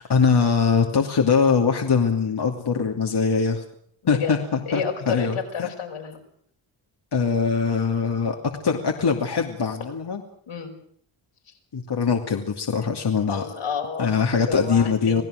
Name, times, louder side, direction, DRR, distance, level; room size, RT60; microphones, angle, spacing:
voice 1, 0.0-3.6 4.1-5.7 7.1-8.4 8.6-10.2 11.7-13.5 14.0-15.2, left 5 dB, 50° left, 1 dB, 2.7 m, -22 dB
voice 2, 4.7-6.2 10.5-10.8 13.3-15.2, left 6 dB, 75° left, 2 dB, 5.4 m, -30 dB
27.0 x 17.0 x 6.5 m, 0.65 s
supercardioid pair, 55°, 50 cm